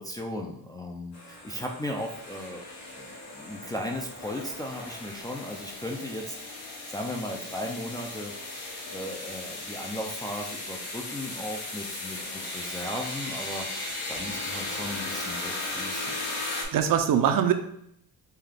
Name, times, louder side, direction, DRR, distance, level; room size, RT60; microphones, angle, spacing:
voice 1, 0.0-2.6 3.0-6.3 6.9-8.3 8.9-12.2 12.4-16.2, left 1 dB, 10° left, -1 dB, 0.3 m, -36 dB
sound 1, 1.1-16.6, left 2 dB, 75° left, 1.1 m, -37 dB
voice 2, 16.3-17.5, right 9 dB, 60° right, 7 dB, 0.5 m, -24 dB
5.6 x 2.3 x 3.3 m, 0.73 s
cardioid pair, 150°, 38 cm